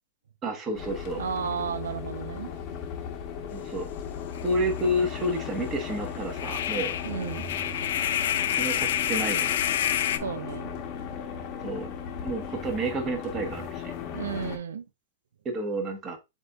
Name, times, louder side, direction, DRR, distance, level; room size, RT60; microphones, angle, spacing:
voice 1, 0.4-1.2 3.5-3.9 4.4-6.9 8.5-9.5 11.6-11.9 12.2-13.9 15.4-16.2, right 1 dB, 25° right, 1.1 m, -30 dB
sound 1, 0.7-14.6, left 7 dB, 40° left, 1.0 m, -36 dB
voice 2, 1.2-2.5 7.0-7.4 10.2-10.7 14.1-14.8, right 7 dB, 90° right, 0.5 m, -33 dB
sound 2, 4.4-4.5 4.8-4.9 6.3-10.2, left 11 dB, 65° left, 0.4 m, -28 dB
7.8 x 2.6 x 2.3 m
hypercardioid pair, 140°, 0 cm